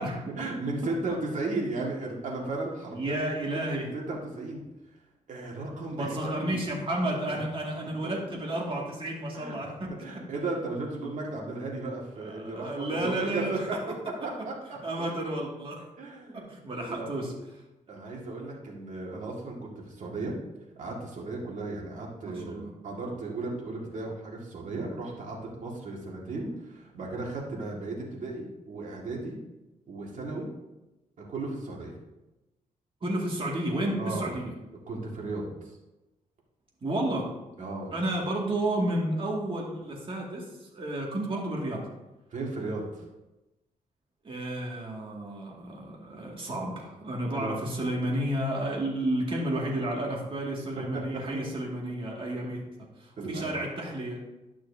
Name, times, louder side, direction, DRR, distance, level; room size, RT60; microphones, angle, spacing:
voice 1, 0.4-3.2 3.5-4.6 5.3-6.6 7.3-7.4 8.0-8.1 9.3-13.9 14.2-14.5 14.9-15.1 16.0-17.1 17.9-20.4 20.8-29.4 29.9-30.5 31.2-31.9 34.0-34.4 34.9-35.5 37.6-37.9 42.3-43.0 47.3-47.6 50.8-51.0 51.3-51.4 53.2-53.5, right 2 dB, 60° right, -2 dB, 2.1 m, -35 dB
voice 2, 2.9-3.9 5.9-10.0 12.2-13.7 14.8-15.8 16.3-17.3 22.2-22.7 33.0-34.5 36.8-37.3 37.9-41.8 44.2-52.6 53.0-54.2, right 1 dB, 40° right, -2 dB, 2.2 m, -31 dB
12.0 x 6.1 x 2.8 m, 1.0 s
cardioid pair, 110°, 14 cm